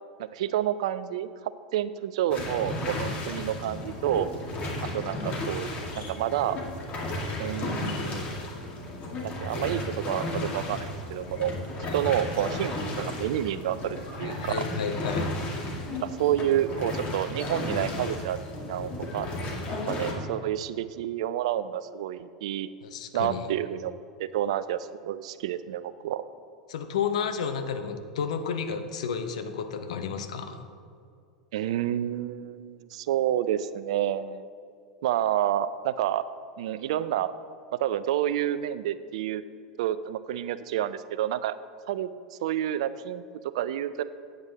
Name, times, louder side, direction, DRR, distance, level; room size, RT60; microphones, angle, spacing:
voice 1, 0.2-1.3 1.7-4.3 4.9-6.6 7.4-8.2 9.2-11.5 11.9-14.7 15.6-19.3 19.9-22.7 23.1-26.2 31.5-34.4 35.0-36.2 36.6-37.3 37.8-39.4 39.8-41.5 41.9-42.1 42.4-43.2 43.5-44.0, right 11 dB, 65° right, 14 dB, 0.4 m, -29 dB
sound 1, 2.3-20.1, left 2 dB, 35° left, 2.0 m, -34 dB
voice 2, 14.2-15.3 22.8-23.5 26.7-30.6, left 6 dB, 70° left, 7 dB, 0.8 m, -32 dB
8.9 x 8.0 x 4.0 m, 2.3 s
hypercardioid pair, 85°, 4 cm